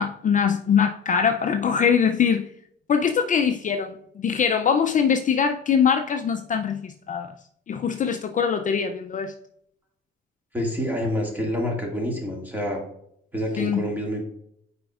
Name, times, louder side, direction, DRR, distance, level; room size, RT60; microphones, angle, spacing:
voice 1, 0.0-2.5 2.9-7.3 7.7-9.3 13.6-13.9, left 7 dB, 40° left, 0.4 m, -22 dB
voice 2, 10.5-12.8 13.3-14.2, equal, 10° right, 2.0 m, -27 dB
8.0 x 5.1 x 2.4 m
cardioid pair, 90°, 20 cm